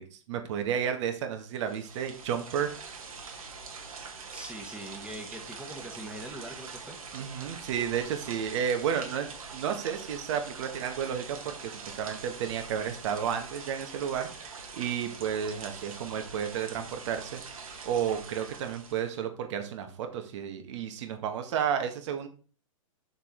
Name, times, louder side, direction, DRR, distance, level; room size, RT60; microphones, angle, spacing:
voice 1, 0.0-2.7 7.1-17.4 17.8-22.3, right 8 dB, 55° right, 6 dB, 1.9 m, -32 dB
sound 1, 1.5-19.1, right 5 dB, 85° right, 2.2 m, -44 dB
voice 2, 4.3-7.0, right 1 dB, 5° right, 3 dB, 1.7 m, -42 dB
6.7 x 6.6 x 4.6 m, 0.38 s
hypercardioid pair, 120°, 18 cm